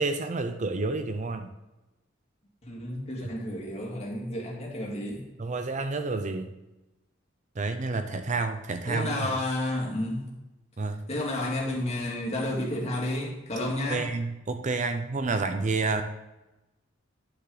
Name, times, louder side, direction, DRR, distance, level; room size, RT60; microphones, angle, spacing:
voice 1, 0.0-1.5 5.4-6.5 7.6-9.2 10.8-11.0 13.9-16.0, right 3 dB, 35° right, 8 dB, 0.5 m, -29 dB
voice 2, 2.6-5.2 8.9-10.3 11.1-14.1, left 1 dB, 30° left, -2 dB, 2.3 m, -31 dB
10.0 x 6.3 x 3.9 m, 1.0 s
head